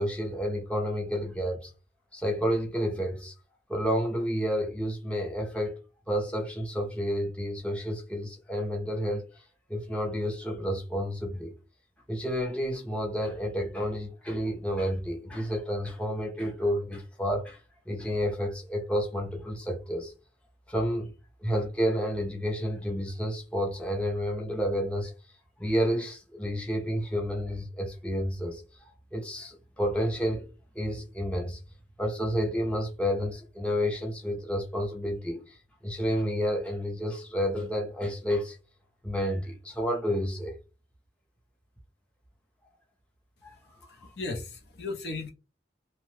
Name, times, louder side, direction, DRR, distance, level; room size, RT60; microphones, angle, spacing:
voice 1, 0.0-1.7 2.1-3.3 3.7-5.8 6.1-9.4 9.7-11.5 12.1-17.6 17.9-20.1 20.7-21.1 21.4-25.1 25.6-28.6 29.1-30.5 30.8-31.6 32.0-35.6 35.8-38.6 39.0-40.6 43.4-43.6 43.8-43.9, equal, 5° left, 0.6 m, -30 dB
voice 2, 43.5-45.3, left 3 dB, 70° left, 0.7 m, -37 dB
2.8 x 2.2 x 3.1 m
head